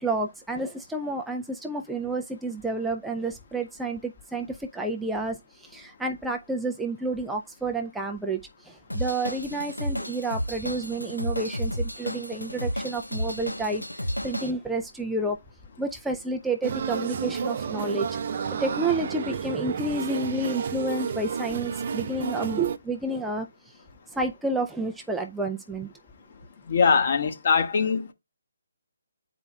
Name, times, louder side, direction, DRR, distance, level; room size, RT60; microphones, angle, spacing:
voice 1, 0.0-13.8 14.2-15.4 15.8-18.1 18.6-23.8 24.1-25.9, right 2 dB, 5° right, 0.4 m, -30 dB
Drum kit / Drum, 8.9-14.5, equal, 85° left, 0.8 m, -32 dB
sound 1, 16.6-22.8, right 6 dB, 40° right, 0.6 m, -31 dB
voice 2, 26.7-28.1, left 5 dB, 45° left, 1.1 m, -22 dB
10.5 x 4.5 x 2.2 m
figure-of-eight pair, 140°, 0 cm